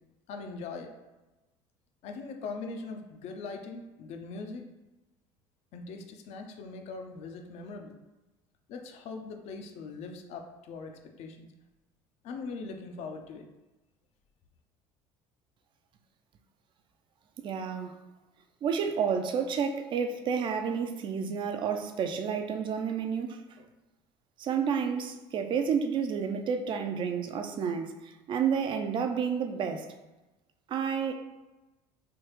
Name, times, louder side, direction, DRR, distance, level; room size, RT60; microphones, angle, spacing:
voice 1, 0.3-0.9 2.0-4.7 5.7-7.9 8.7-11.5 12.2-13.5, left 4 dB, 60° left, 0.5 m, -41 dB
voice 2, 17.4-18.0 18.6-23.4 24.4-29.9 30.7-31.1, right 6 dB, 40° right, 0.4 m, -30 dB
3.4 x 2.3 x 3.1 m
supercardioid pair, 110°, 13 cm